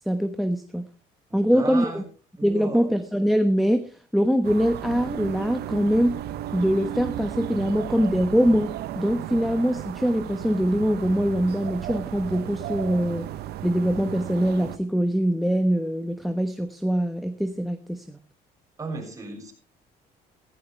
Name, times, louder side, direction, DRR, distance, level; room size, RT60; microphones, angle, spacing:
voice 1, 0.1-0.8 1.3-2.0 2.4-6.2 6.5-13.3 13.6-18.2, equal, ahead, 10 dB, 1.1 m, -23 dB
voice 2, 1.3-2.0 2.4-2.9 18.8-19.5, right 3 dB, 20° right, 1 dB, 6.4 m, -35 dB
sound 1, 4.4-14.8, right 12 dB, 70° right, 1.0 m, -34 dB
15.5 x 15.0 x 3.3 m, 0.35 s
cardioid pair, 110°, 17 cm